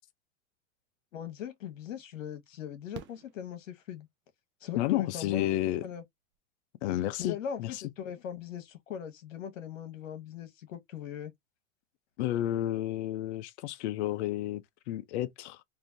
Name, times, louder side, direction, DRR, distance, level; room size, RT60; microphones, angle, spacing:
voice 1, 1.1-4.1 4.6-5.5 5.8-6.0 7.2-11.3, left 8 dB, 80° left, 1.3 m, -40 dB
Fireworks, 2.9-4.3 6.0-6.1 6.3-6.4, right 11 dB, 30° right, 0.6 m, -49 dB
voice 2, 4.7-5.8 6.8-7.8 12.2-15.6, left 14 dB, 60° left, 0.6 m, -31 dB
3.3 x 2.7 x 2.6 m
hypercardioid pair, 115°, 38 cm